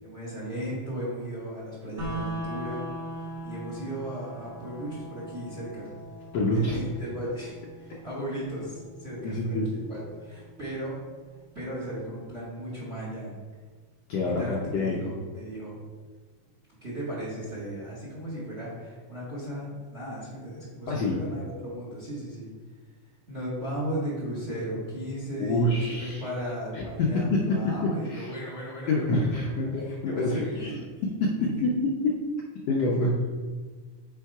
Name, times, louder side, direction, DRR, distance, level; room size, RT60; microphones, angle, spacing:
voice 1, 0.0-2.9 3.2-5.9 6.4-11.0 11.5-13.3 14.2-15.8 16.8-22.5 23.3-29.7 30.0-31.0 31.4-31.5 32.9-33.0, equal, 30° right, -5 dB, 1.3 m, -36 dB
sound 1, 2.0-12.0, right 1 dB, 50° right, 0.8 m, -41 dB
voice 2, 6.3-6.8 9.2-9.7 14.1-15.0 20.9-21.2 25.4-26.2 26.7-27.4 27.8-28.3 28.9-30.6 31.2-31.3 31.6-32.1 32.7-33.3, left 2 dB, 70° left, -4 dB, 1.6 m, -26 dB
5.7 x 4.4 x 4.7 m, 1.4 s
omnidirectional pair, 3.5 m